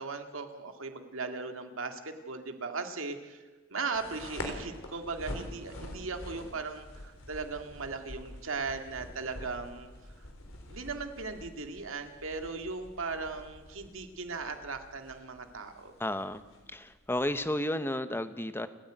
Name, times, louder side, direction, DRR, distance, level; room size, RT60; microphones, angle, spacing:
voice 1, 0.0-3.4 3.7-9.9 10.7-15.9, right 4 dB, 75° right, 6 dB, 2.1 m, -38 dB
sound 1, 3.9-17.4, left 1 dB, 75° left, 3.8 m, -46 dB
voice 2, 16.0-16.4 16.7-18.7, left 1 dB, 10° left, 11 dB, 1.0 m, -32 dB
29.5 x 10.0 x 9.2 m, 1.3 s
head